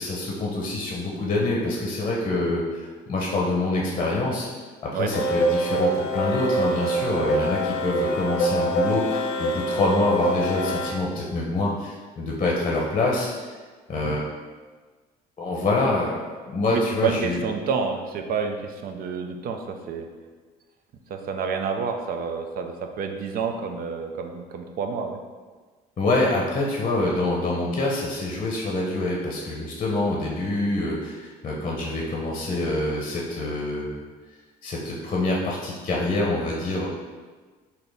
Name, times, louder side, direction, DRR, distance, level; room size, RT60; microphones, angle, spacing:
voice 1, 0.0-4.5 4.8-13.6 13.9-14.3 15.4-17.4 26.0-33.9 34.6-36.9, left 2 dB, 35° left, -3 dB, 0.7 m, -26 dB
sound 1, 5.1-10.9, right 1 dB, 90° left, 0.5 m, -25 dB
voice 2, 16.7-20.1 21.1-25.2, right 5 dB, 60° right, 5 dB, 0.5 m, -29 dB
4.1 x 2.8 x 3.4 m, 1.4 s
cardioid pair, 110°, 17 cm